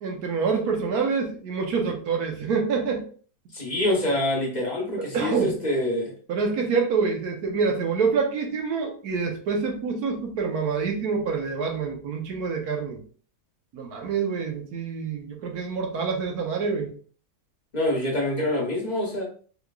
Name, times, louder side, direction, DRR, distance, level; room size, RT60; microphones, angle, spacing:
voice 1, 0.0-3.1 5.0-5.6 6.3-13.0 13.7-16.9, right 5 dB, 80° right, 2 dB, 1.3 m, -26 dB
voice 2, 3.5-6.1 17.7-19.2, left 1 dB, 35° left, -2 dB, 0.9 m, -26 dB
3.7 x 3.1 x 2.3 m, 0.43 s
omnidirectional pair, 1.6 m